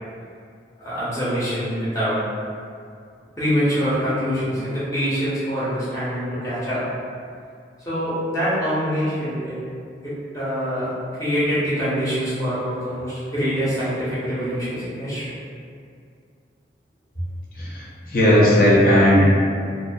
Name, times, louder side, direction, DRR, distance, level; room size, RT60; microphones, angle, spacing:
voice 1, 0.8-2.2 3.4-6.8 7.8-9.6 10.0-10.9 11.2-15.4, equal, 20° left, -11 dB, 0.7 m, -24 dB
voice 2, 17.5-19.2, equal, 50° left, -6 dB, 0.5 m, -16 dB
2.5 x 2.3 x 2.2 m, 2.3 s
head